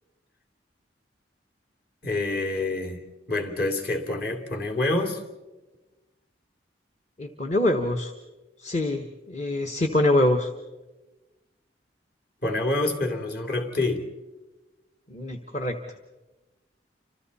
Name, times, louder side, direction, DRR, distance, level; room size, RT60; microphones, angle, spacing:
voice 1, 2.0-3.0 3.3-5.2 12.4-14.0, left 2 dB, 55° left, 4 dB, 3.0 m, -27 dB
voice 2, 7.2-8.1 8.6-10.5 15.1-15.8, left 1 dB, 40° left, 5 dB, 1.2 m, -24 dB
30.0 x 26.0 x 4.2 m, 1.1 s
head